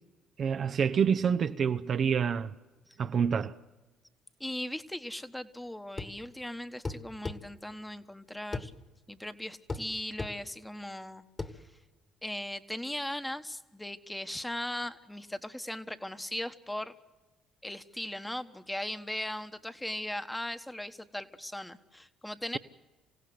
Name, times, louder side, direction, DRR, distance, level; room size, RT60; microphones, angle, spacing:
voice 1, 0.4-2.5 3.0-3.5, right 7 dB, 50° right, 0.8 m, -27 dB
voice 2, 4.4-8.7 9.1-11.2 11.5-11.6 12.2-16.9 17.6-22.6, left 1 dB, 10° left, 1.4 m, -38 dB
sound 1, 6.0-6.2 6.9-7.4 8.5-8.7 9.7-9.9 10.2-10.4 11.4-11.6, left 3 dB, 30° left, 2.1 m, -35 dB
27.0 x 16.5 x 7.9 m
hypercardioid pair, 60°, 0 cm